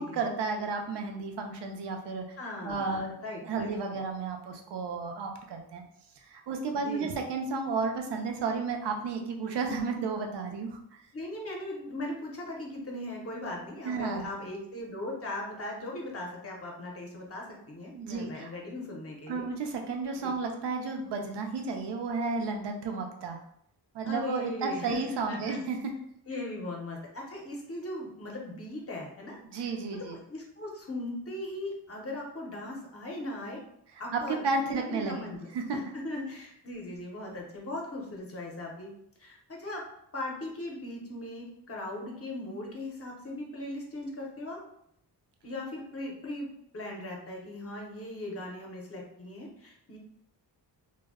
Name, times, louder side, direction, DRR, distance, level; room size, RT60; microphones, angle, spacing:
voice 1, 0.0-2.2 2.6-3.1 3.4-5.8 6.2-11.0 13.8-14.3 17.9-18.5 19.3-23.4 23.9-25.8 29.5-30.2 34.1-35.8, right 4 dB, 75° right, 3 dB, 0.5 m, -32 dB
voice 2, 2.4-4.0 6.7-7.1 11.1-19.5 20.2-20.3 24.0-25.6 26.3-29.4 29.9-33.6 34.0-38.9 39.2-39.8 40.1-44.6 45.4-46.5 46.7-50.0, left 1 dB, 35° left, -1 dB, 0.6 m, -39 dB
2.1 x 2.0 x 3.4 m, 0.72 s
wide cardioid pair, 160°, 41 cm